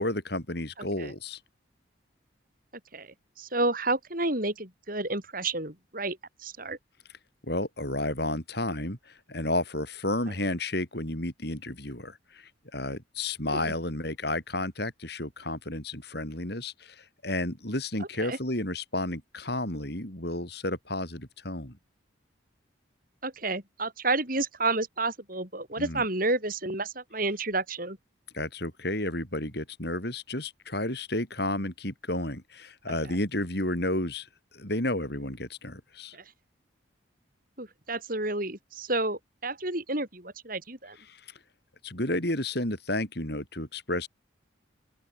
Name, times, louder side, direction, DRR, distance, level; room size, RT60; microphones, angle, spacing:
voice 1, 0.0-1.4 7.4-21.8 25.8-26.0 28.3-34.3 34.5-36.2 41.1-41.2 41.8-44.1, left 1 dB, 55° left, 6.4 m, -32 dB
voice 2, 2.9-6.8 13.5-13.7 18.2-18.4 23.2-28.0 33.1-33.2 36.1-36.2 37.6-41.0, right 2 dB, 45° right, 7.6 m, -30 dB
open air
head